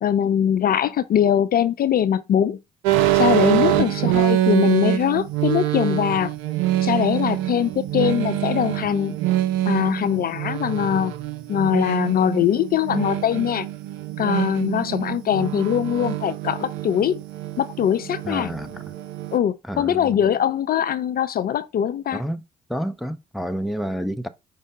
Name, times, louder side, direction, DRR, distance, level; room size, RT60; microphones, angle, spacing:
voice 1, 0.0-2.6 3.1-6.3 6.8-9.2 9.7-11.1 11.5-13.7 14.2-17.2 17.6-18.5 19.3-22.2, left 9 dB, 45° left, 0.4 m, -22 dB
sound 1, 2.8-19.4, right 13 dB, 75° right, 0.5 m, -25 dB
voice 2, 3.6-4.0 18.2-18.8 19.6-20.2 22.1-22.4 22.7-24.3, equal, ahead, 0.6 m, -29 dB
5.2 x 2.1 x 4.8 m
hypercardioid pair, 45°, 20 cm